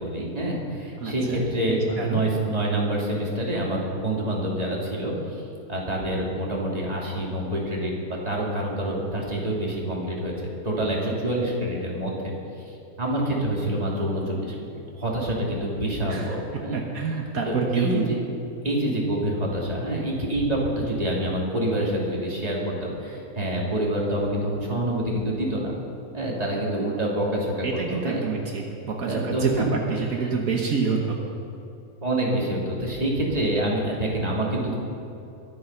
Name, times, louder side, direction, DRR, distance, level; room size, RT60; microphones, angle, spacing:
voice 1, 0.0-5.4 5.7-12.3 12.7-16.8 17.5-18.2 18.6-25.7 26.1-28.2 29.0-29.6 30.1-30.3 32.0-34.7, right 1 dB, 25° right, -3 dB, 2.9 m, -27 dB
voice 2, 1.0-2.2 16.1-16.3 16.7-18.0 27.6-31.2, right 5 dB, 70° right, 0 dB, 1.7 m, -27 dB
23.0 x 8.6 x 5.7 m, 2.8 s
omnidirectional pair, 1.5 m